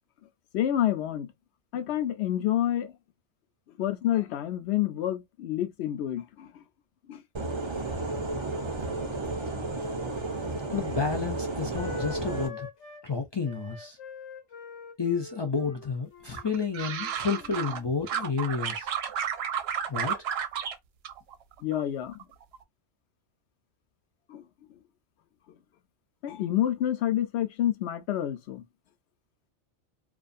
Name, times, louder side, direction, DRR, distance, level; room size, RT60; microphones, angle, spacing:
voice 1, 0.5-1.3 1.7-3.0 3.8-6.6 7.1-7.2 21.6-22.2 24.3-24.4 26.2-28.6, left 12 dB, 75° left, 0.8 m, -28 dB
sound 1, 7.3-12.5, right 2 dB, 35° right, 0.5 m, -32 dB
Wind instrument woodwind instrument, 9.6-13.1 13.4-17.9, left 5 dB, 90° left, 1.0 m, -46 dB
voice 2, 10.7-12.7 13.0-14.0 15.0-18.9 19.9-20.2, left 5 dB, 45° left, 0.3 m, -30 dB
sound 2, 16.3-17.8 18.1-20.8 21.0-21.8 22.1-22.6, right 8 dB, 65° right, 0.8 m, -32 dB
2.5 x 2.4 x 2.5 m
omnidirectional pair, 1.2 m